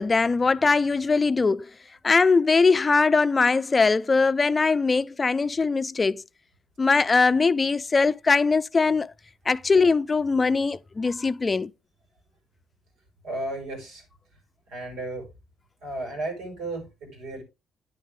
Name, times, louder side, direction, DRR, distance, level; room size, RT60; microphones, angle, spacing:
voice 1, 0.0-1.7 2.0-6.2 6.8-9.1 9.5-11.7, left 4 dB, 30° left, 0.5 m, -21 dB
voice 2, 13.2-14.0 14.7-15.3 15.8-17.4, right 2 dB, 90° right, 5.8 m, -34 dB
9.6 x 7.3 x 3.5 m
cardioid pair, 90°, 0 cm